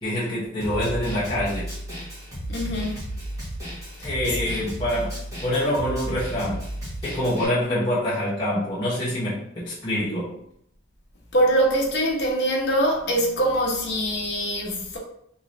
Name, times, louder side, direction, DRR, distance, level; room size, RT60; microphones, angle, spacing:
voice 1, 0.0-1.7 4.0-6.6 7.0-10.3, left 1 dB, 20° left, 0.9 m, -26 dB
Snare drum, 0.6-7.4, right 1 dB, 15° right, 1.4 m, -33 dB
voice 2, 2.5-3.0 4.0-4.6 11.3-15.0, right 1 dB, 55° left, 0.9 m, -23 dB
3.7 x 3.0 x 2.6 m
head